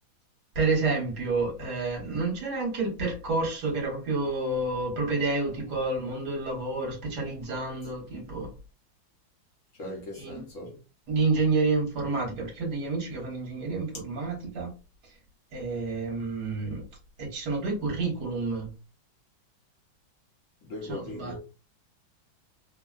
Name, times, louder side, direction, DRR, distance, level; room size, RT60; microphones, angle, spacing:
voice 1, 0.5-8.5 10.2-10.4 11.1-14.7 15.5-16.8 17.2-18.7 20.9-21.3, right 3 dB, 55° right, 1.7 m, -29 dB
voice 2, 9.7-10.8 20.6-21.4, left 1 dB, 60° left, 0.9 m, -39 dB
3.5 x 2.1 x 2.3 m
omnidirectional pair, 2.2 m